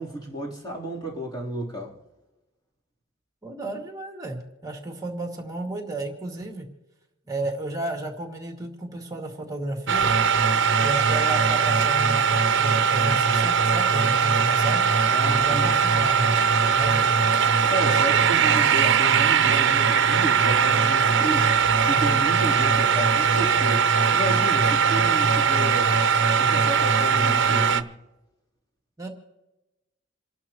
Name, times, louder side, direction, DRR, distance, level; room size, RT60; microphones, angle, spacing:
voice 1, 0.0-1.9 15.1-15.7 17.7-21.5 21.9-26.0 26.4-27.9, right 1 dB, 20° left, 3.5 m, -32 dB
voice 2, 3.4-6.7 7.3-10.1 10.8-14.8 15.2-16.4 16.7-17.2 29.0-29.1, right 2 dB, 20° right, 2.3 m, -33 dB
sound 1, 9.9-27.8, right 6 dB, 65° right, 0.8 m, -20 dB
28.5 x 12.0 x 3.1 m
head